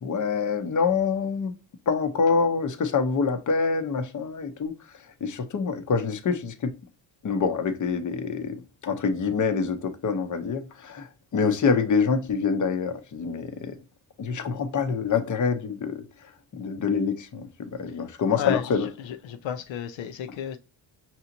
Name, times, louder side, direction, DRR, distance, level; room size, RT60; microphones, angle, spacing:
voice 1, 0.0-1.5 1.9-4.7 5.2-6.7 7.2-8.6 8.8-11.1 11.3-13.7 14.2-16.0 16.5-17.5 17.8-18.9, left 5 dB, 40° left, 0.8 m, -26 dB
voice 2, 18.3-20.6, left 8 dB, 75° left, 0.6 m, -32 dB
5.5 x 2.9 x 2.6 m
cardioid pair, 90°, 46 cm